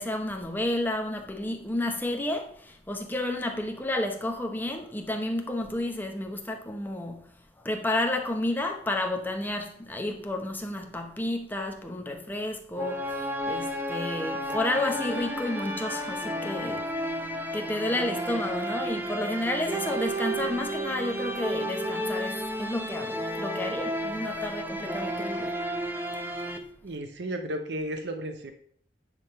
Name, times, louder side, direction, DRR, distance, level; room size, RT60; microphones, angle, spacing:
voice 1, 0.0-7.2 7.6-25.6, left 1 dB, 10° left, 1.0 m, -31 dB
sound 1, 12.8-26.6, equal, 10° right, 0.7 m, -32 dB
voice 2, 26.8-28.5, right 1 dB, 65° right, 0.8 m, -33 dB
9.9 x 3.7 x 5.7 m
head